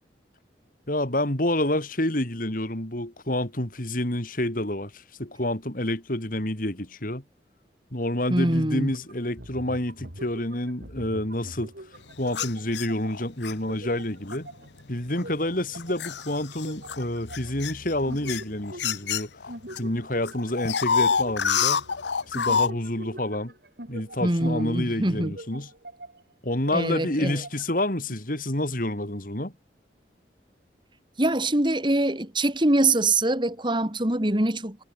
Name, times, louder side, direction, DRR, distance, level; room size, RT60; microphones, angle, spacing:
voice 1, 0.9-7.2 7.9-11.7 12.2-14.5 14.9-19.3 19.8-21.8 22.3-23.5 23.9-25.7 26.4-29.5, left 1 dB, 50° left, 3.7 m, -28 dB
voice 2, 8.3-8.9 24.2-25.3 26.7-27.4 31.2-34.8, right 2 dB, 25° right, 2.5 m, -24 dB
sound 1, 8.9-13.2 13.7-17.7 18.0-19.2 19.5-24.8 25.2-26.3 26.7-27.7 28.1-28.2, right 1 dB, 60° right, 5.8 m, -44 dB
sound 2, 12.3-13.5 14.3-14.5 15.2-19.8 20.1-22.7, left 6 dB, 80° left, 0.9 m, -27 dB
head